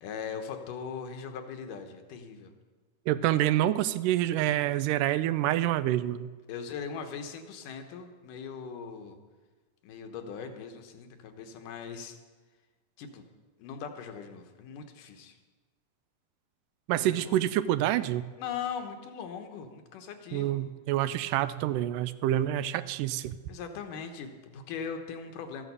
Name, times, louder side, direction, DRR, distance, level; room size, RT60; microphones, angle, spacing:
voice 1, 0.0-2.5 6.5-9.2 9.8-12.2 13.0-13.2 13.6-15.4 17.0-17.4 18.4-20.6 23.5-25.7, left 6 dB, 80° left, 6 dB, 2.7 m, -40 dB
voice 2, 3.1-6.3 16.9-18.3 20.3-23.4, right 13 dB, 85° right, 14 dB, 2.2 m, -27 dB
13.5 x 9.1 x 6.8 m, 1.3 s
omnidirectional pair, 3.7 m